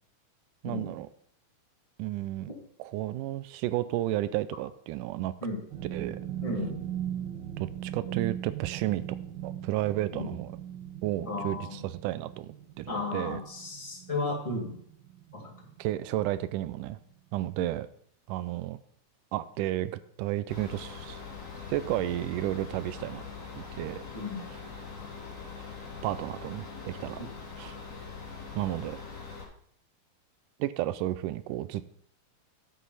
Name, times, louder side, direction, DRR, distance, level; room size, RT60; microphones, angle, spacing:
voice 1, 0.6-1.1 2.0-2.5 2.8-5.3 5.9-6.2 7.6-9.2 9.4-10.5 11.0-13.4 15.8-17.0 17.3-17.9 18.3-18.8 19.3-19.9 20.2-21.2 21.7-23.2 23.6-24.0 25.6-25.7 26.0-27.2 27.6-27.8 28.6-29.0 30.6-31.8, right 15 dB, 85° right, 15 dB, 2.1 m, -32 dB
sound 1, 5.7-16.4 16.7-17.0 17.4-17.5, right 10 dB, 65° right, 1.1 m, -40 dB
voice 2, 6.4-6.8 8.1-8.2 10.1-10.3 11.3-11.8 12.9-14.8 15.3-15.5 24.1-24.4, left 2 dB, 15° left, -1 dB, 1.6 m, -34 dB
sound 2, 20.5-29.4, left 5 dB, 30° left, 1.6 m, -42 dB
11.0 x 8.0 x 4.1 m, 0.65 s
omnidirectional pair, 3.7 m